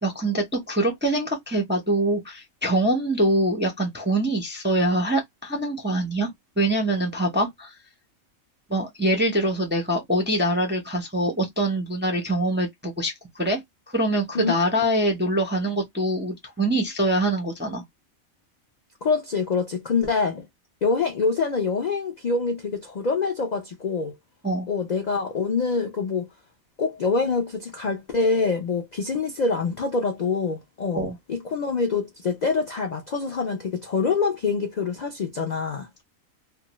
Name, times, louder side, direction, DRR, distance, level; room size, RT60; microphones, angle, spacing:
voice 1, 0.0-6.3 6.6-7.7 8.7-13.6 13.9-17.8 24.4-24.7 30.9-31.2, right 1 dB, 15° right, 0.3 m, -24 dB
voice 2, 19.0-20.4 20.8-24.1 24.7-26.3 26.8-35.9, left 4 dB, 80° left, 0.4 m, -25 dB
2.5 x 2.2 x 2.9 m
omnidirectional pair, 1.4 m